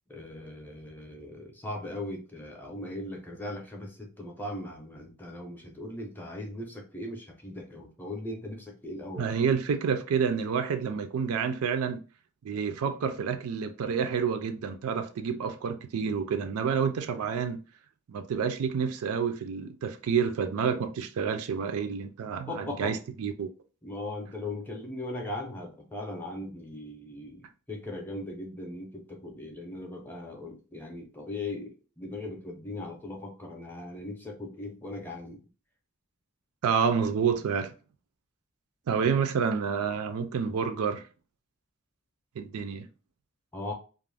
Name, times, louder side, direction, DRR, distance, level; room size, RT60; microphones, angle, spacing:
voice 1, 0.1-9.3 22.5-22.9 23.8-35.4 43.5-43.7, left 1 dB, 10° left, 0.5 m, -39 dB
voice 2, 9.2-12.0 12.4-17.6 18.1-23.5 36.6-37.7 38.9-41.0 42.4-42.9, right 6 dB, 80° right, 0.4 m, -29 dB
2.4 x 2.1 x 3.2 m
head